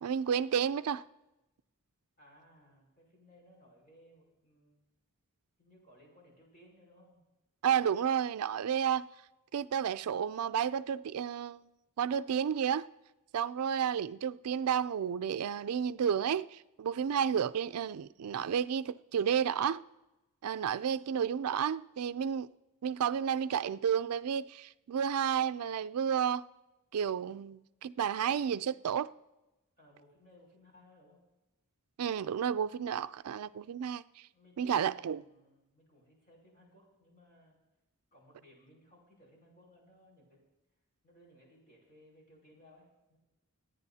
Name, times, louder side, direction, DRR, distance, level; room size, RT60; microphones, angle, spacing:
voice 1, 0.0-1.0 7.6-9.1 9.5-11.6 12.0-12.9 13.3-19.8 20.4-22.5 22.8-26.4 26.9-29.1 32.0-34.0 34.6-35.2, right 8 dB, 80° right, 0.4 m, -31 dB
voice 2, 2.2-4.8 5.6-7.2 29.8-31.2 34.3-37.6 38.1-40.4 41.0-43.2, left 1 dB, 40° left, 5.5 m, -61 dB
27.5 x 9.7 x 2.8 m
head